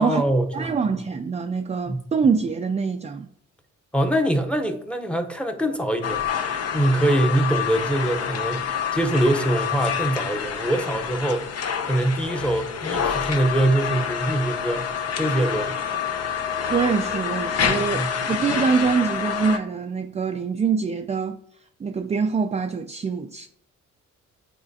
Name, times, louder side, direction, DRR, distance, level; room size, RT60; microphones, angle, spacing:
voice 1, 0.0-0.7 1.9-2.0 3.9-6.3 6.7-11.5 11.8-15.8 17.7-18.1, right 1 dB, 5° left, 0.8 m, -23 dB
voice 2, 0.5-3.3 16.7-21.4 21.8-23.5, right 5 dB, 20° right, 0.4 m, -24 dB
sound 1, 6.0-19.6, left 7 dB, 55° left, 0.7 m, -27 dB
8.9 x 4.2 x 2.7 m
cardioid pair, 90°, 30 cm